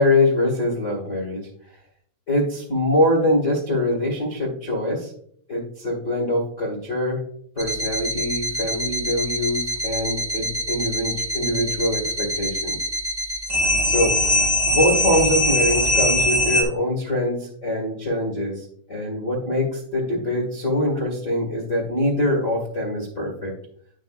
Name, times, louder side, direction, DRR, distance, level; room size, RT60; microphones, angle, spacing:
voice 1, 0.0-1.5 2.3-5.1 5.5-7.2 7.5-12.8 13.8-14.2 14.6-23.5, left 1 dB, 90° left, -1 dB, 0.6 m, -23 dB
sound 1, 7.6-16.6, left 1 dB, 25° right, 1.6 m, -23 dB
11.0 x 6.2 x 2.4 m, 0.62 s
omnidirectional pair, 4.5 m